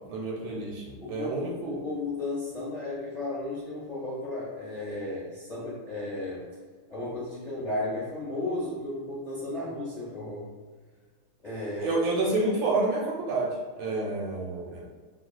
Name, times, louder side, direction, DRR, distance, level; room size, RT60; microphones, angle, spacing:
voice 1, 0.1-1.8 11.7-14.8, right 2 dB, 75° right, -2 dB, 1.3 m, -29 dB
voice 2, 1.0-6.5 6.9-10.5 11.4-12.0, left 2 dB, 30° left, -8 dB, 0.9 m, -34 dB
5.3 x 2.9 x 2.2 m, 1.5 s
omnidirectional pair, 2.4 m